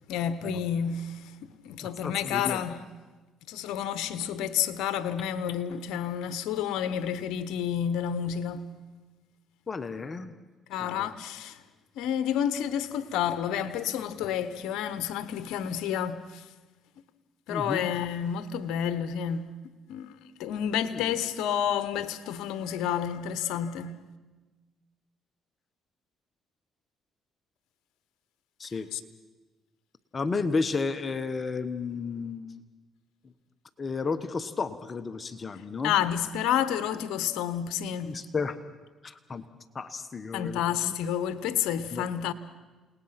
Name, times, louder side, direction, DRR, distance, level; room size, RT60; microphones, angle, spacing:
voice 1, 0.1-2.8 3.5-8.7 10.7-11.6 12.0-16.5 17.5-19.5 19.9-20.1 20.4-24.0 28.9-29.0 35.8-38.2 40.3-42.3, left 9 dB, 80° left, 1.0 m, -30 dB
voice 2, 1.8-2.6 9.7-10.3 10.8-11.1 17.5-17.9 20.9-21.1 28.6-28.9 30.1-32.6 33.8-35.9 38.0-38.6 39.0-39.4 39.7-40.9 41.9-42.0, left 4 dB, 35° left, 1.2 m, -32 dB
29.0 x 19.5 x 5.9 m
cardioid pair, 80°, 0 cm